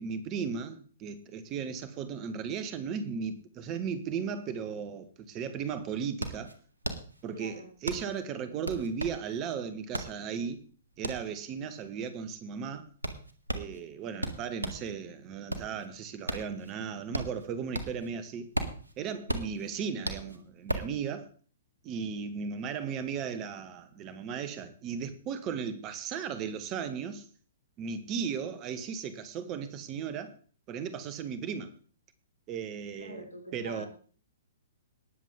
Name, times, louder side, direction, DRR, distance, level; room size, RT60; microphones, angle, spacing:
voice 1, 0.0-6.5 7.2-7.5 7.8-10.6 11.0-12.9 13.5-18.5 19.0-21.3 21.8-27.2 27.8-30.3 30.7-31.7 32.5-33.2 33.5-33.9, right 6 dB, 30° right, 1.4 m, -36 dB
sound 1, 5.2-5.3 5.6-14.9 15.3-18.1 18.4-21.0, right 1 dB, 85° right, 1.7 m, -36 dB
voice 2, 7.3-7.7 33.0-33.9, left 1 dB, 85° left, 4.3 m, -45 dB
19.5 x 7.4 x 3.8 m
figure-of-eight pair, 115°, 0 cm